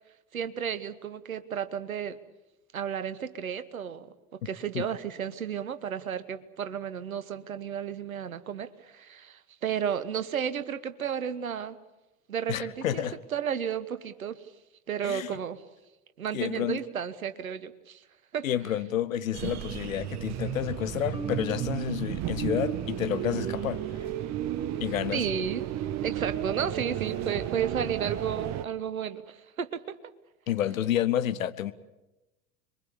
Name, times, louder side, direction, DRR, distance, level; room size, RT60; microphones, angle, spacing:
voice 1, 0.3-2.2 2.7-11.8 12.3-13.0 13.3-14.4 14.9-15.6 16.2-18.0 18.3-18.5 25.1-25.7 26.0-30.0, right 8 dB, 75° right, 1.3 m, -33 dB
voice 2, 12.5-13.2 15.0-15.3 16.3-16.8 18.4-23.8 24.8-25.2 30.5-31.7, left 11 dB, 70° left, 1.2 m, -30 dB
sound 1, 19.3-28.7, right 11 dB, 40° right, 1.3 m, -33 dB
Marimba xylophone, 21.1-23.2, right 3 dB, 10° right, 1.7 m, -42 dB
26.5 x 23.0 x 7.2 m
figure-of-eight pair, 70°, 42 cm